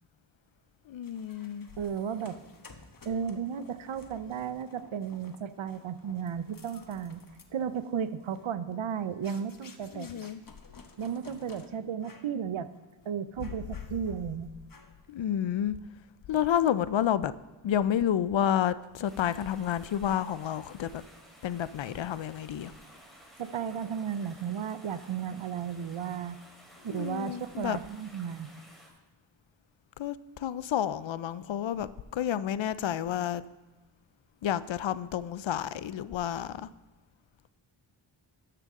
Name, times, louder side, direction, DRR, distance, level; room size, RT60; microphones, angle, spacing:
voice 1, 0.9-1.7 9.9-10.4 15.1-15.8 16.3-17.3 17.6-21.0 21.4-22.7 26.8-27.8 30.0-33.4 34.4-36.7, left 10 dB, 65° left, 0.5 m, -30 dB
sound 1, 1.0-11.7 12.0-12.4 12.7-12.9 13.4-14.3 14.7-15.1, left 4 dB, 45° left, 1.1 m, -55 dB
voice 2, 1.8-2.4 3.1-7.2 7.5-10.1 11.0-12.7 13.1-14.5 23.4-26.4 26.8-28.5, right 8 dB, 70° right, 0.7 m, -34 dB
sound 2, 19.0-28.9, equal, ahead, 3.3 m, -55 dB
12.5 x 6.7 x 3.7 m
cardioid pair, 45°, 49 cm